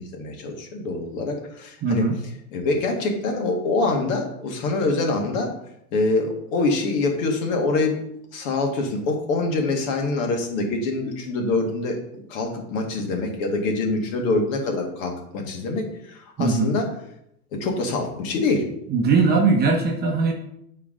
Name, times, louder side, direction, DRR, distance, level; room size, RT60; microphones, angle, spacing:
voice 1, 0.0-2.1 2.5-5.5 5.9-8.0 8.3-16.9 17.5-18.7, left 3 dB, 55° left, 2 dB, 1.8 m, -25 dB
voice 2, 1.8-2.2 16.4-16.7 18.9-20.3, right 4 dB, 20° right, 1 dB, 0.9 m, -20 dB
8.3 x 4.8 x 3.7 m, 0.75 s
supercardioid pair, 150°, 48 cm